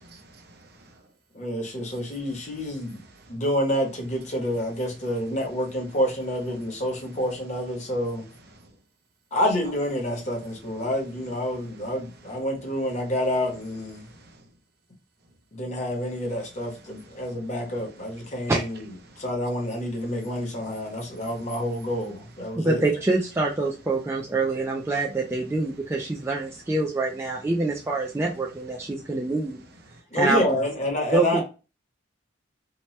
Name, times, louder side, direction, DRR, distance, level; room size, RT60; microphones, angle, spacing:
voice 1, 0.1-1.0 1.9-2.1 3.2-3.4 8.5-8.7 11.5-11.6 12.2-12.3 14.0-14.5 16.9-17.5 18.2-18.5 19.1-19.3 20.1-21.5 22.4-22.6 28.8-29.0 29.9-30.0, right 2 dB, 55° right, 0.7 m, -52 dB
voice 2, 1.3-3.0 3.3-8.3 9.3-14.1 15.5-18.9 19.2-22.8 30.1-31.4, equal, 35° left, 0.9 m, -28 dB
voice 3, 22.5-29.6 30.1-30.5 31.1-31.4, right 2 dB, 15° right, 0.3 m, -25 dB
2.8 x 2.2 x 3.0 m
head